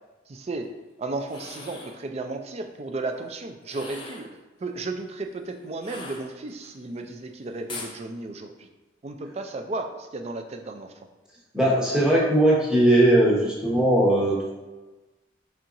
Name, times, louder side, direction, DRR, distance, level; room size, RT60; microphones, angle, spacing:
voice 1, 0.3-0.7 1.0-4.3 4.6-8.7 9.0-10.9, right 2 dB, 35° right, 5 dB, 0.4 m, -34 dB
sound 1, 1.2-2.0 3.6-4.4 5.8-6.7 7.7-8.0, left 3 dB, 25° left, 0.5 m, -40 dB
voice 2, 11.5-14.5, right 1 dB, 5° right, -5 dB, 0.9 m, -19 dB
4.6 x 4.3 x 2.6 m, 1.2 s
head